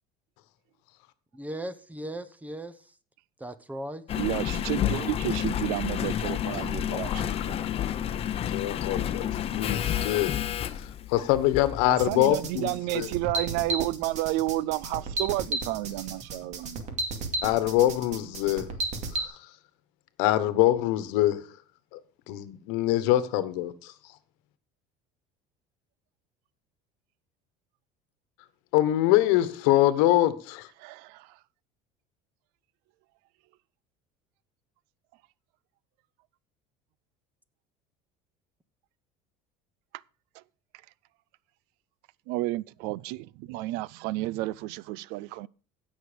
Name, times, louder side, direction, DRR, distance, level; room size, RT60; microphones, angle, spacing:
voice 1, 1.3-2.9 3.4-4.2, right 1 dB, 10° right, 0.9 m, -38 dB
Engine, 4.1-12.0 12.6-12.7, left 10 dB, 35° left, 0.8 m, -30 dB
voice 2, 4.2-7.6 11.9-16.8 30.8-31.3 42.3-45.5, right 18 dB, 75° right, 0.4 m, -31 dB
voice 3, 6.9-7.4 8.5-10.3 10.8-13.1 17.4-18.7 19.1-19.4 20.2-21.4 21.9-22.0 22.3-23.9 28.7-30.7, left 14 dB, 80° left, 1.2 m, -24 dB
sound 1, 12.0-19.3, right 2 dB, 45° right, 2.3 m, -33 dB
16.0 x 6.3 x 5.1 m
cardioid pair, 130°, 17 cm